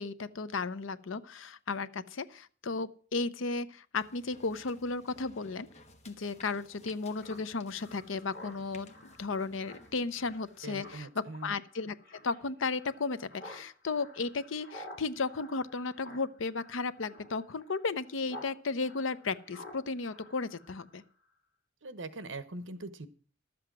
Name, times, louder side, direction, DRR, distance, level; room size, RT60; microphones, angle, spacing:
voice 1, 0.0-5.7 6.1-11.9 12.2-21.0, left 4 dB, 75° left, 15 dB, 0.7 m, -34 dB
sound 1, 3.9-11.0, left 2 dB, 35° left, 1.2 m, -57 dB
Speech synthesizer, 7.2-18.5 18.8-21.0, left 1 dB, 50° left, 4.3 m, -51 dB
voice 2, 10.6-11.5 21.8-23.1, right 2 dB, 70° right, 13 dB, 1.1 m, -42 dB
12.0 x 7.8 x 6.1 m, 0.43 s
head